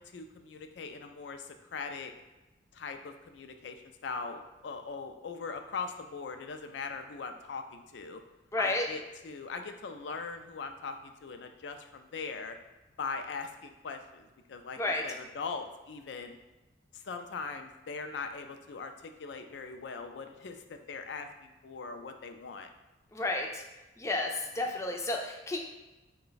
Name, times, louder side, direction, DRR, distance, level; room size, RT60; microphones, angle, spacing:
voice 1, 0.0-2.1 2.7-8.2 8.6-12.6 13.0-16.4 16.9-22.7 24.6-24.8, left 4 dB, 80° left, 6 dB, 0.4 m, -41 dB
voice 2, 8.5-8.8 14.8-15.0 23.1-23.6 24.0-25.6, left 2 dB, 15° left, 1 dB, 0.4 m, -31 dB
4.7 x 2.2 x 3.9 m, 1.1 s
head